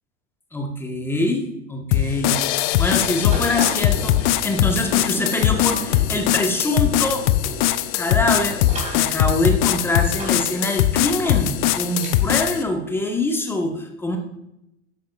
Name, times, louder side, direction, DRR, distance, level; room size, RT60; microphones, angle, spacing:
voice 1, 0.5-1.4 1.7-2.4 2.8-7.2 7.9-8.6 8.9-14.2, left 1 dB, 5° left, 2 dB, 1.3 m, -24 dB
sound 1, 1.9-12.6, left 13 dB, 40° left, 0.6 m, -21 dB
sound 2, 3.3-12.5, right 1 dB, 20° right, 3.6 m, -37 dB
12.0 x 8.6 x 2.5 m, 0.85 s
figure-of-eight pair, 90°, 36 cm